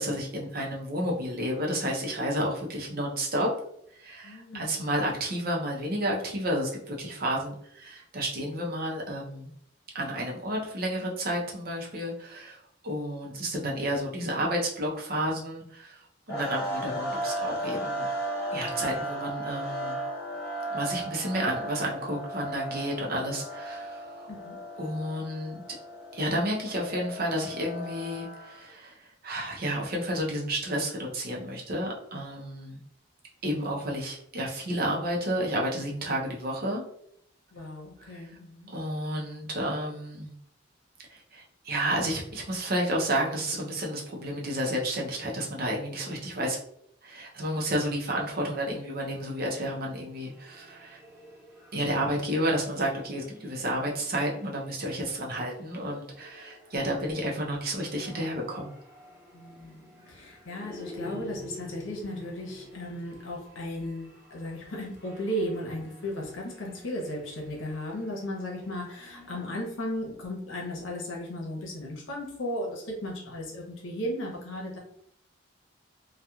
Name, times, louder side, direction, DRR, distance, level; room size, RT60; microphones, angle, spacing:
voice 1, 0.0-3.5 3.9-9.5 9.9-18.1 18.5-20.0 20.7-24.3 24.8-25.6 26.1-32.8 33.4-36.8 38.0-38.3 38.7-40.3 41.1-46.6 47.0-51.0 51.7-58.7, equal, 50° right, -1 dB, 0.6 m, -31 dB
voice 2, 4.2-4.9 24.3-24.6 37.5-38.7 59.3-74.8, equal, 80° left, -1 dB, 0.9 m, -36 dB
sound 1, 16.3-28.7, right 1 dB, 55° left, 0.7 m, -35 dB
sound 2, 50.0-69.9, left 1 dB, 15° right, 1.3 m, -50 dB
2.9 x 2.3 x 2.3 m, 0.70 s
head